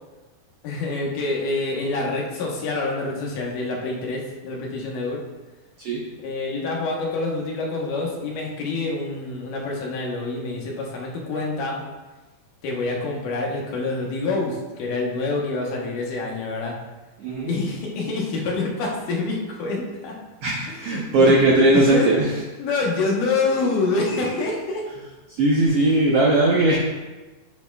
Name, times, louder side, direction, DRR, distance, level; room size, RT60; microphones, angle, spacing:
voice 1, 0.6-5.2 6.2-11.8 12.6-16.8 17.5-20.2 20.7-21.4 21.7-22.1 22.6-24.9, left 3 dB, 75° left, -2 dB, 2.7 m, -26 dB
voice 2, 17.2-17.5 20.4-22.4 25.3-26.8, right 2 dB, 75° right, -2 dB, 1.4 m, -18 dB
9.6 x 8.2 x 2.3 m, 1.2 s
omnidirectional pair, 3.8 m